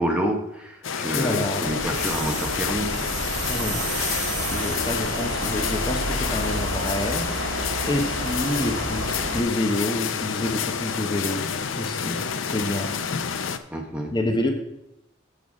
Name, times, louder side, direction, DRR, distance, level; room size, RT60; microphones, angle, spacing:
voice 1, 0.0-3.1 13.7-14.1, equal, 5° right, 2 dB, 0.9 m, -28 dB
sound 1, 0.8-13.6, left 6 dB, 85° left, 0.6 m, -29 dB
voice 2, 1.1-1.7 3.5-3.8 4.4-12.9 14.1-14.5, left 1 dB, 20° left, 3 dB, 0.9 m, -28 dB
sound 2, 1.6-9.4, right 2 dB, 65° right, 1.2 m, -31 dB
sound 3, 1.7-5.4, right 4 dB, 35° right, 1.9 m, -34 dB
8.5 x 5.4 x 6.2 m, 0.87 s
head